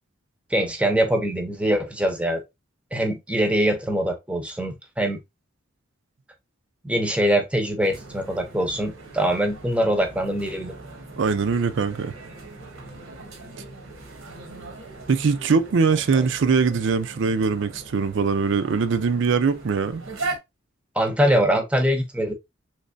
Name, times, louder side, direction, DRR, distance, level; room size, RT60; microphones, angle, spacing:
voice 1, 0.5-2.4 2.9-5.2 6.8-10.7 16.1-16.2 21.0-22.3, right 1 dB, 5° right, 0.6 m, -23 dB
sound 1, 7.8-20.4, right 3 dB, 85° right, 1.2 m, -39 dB
voice 2, 11.2-12.1 15.1-20.0, right 5 dB, 60° right, 0.4 m, -22 dB
3.3 x 3.1 x 2.5 m
head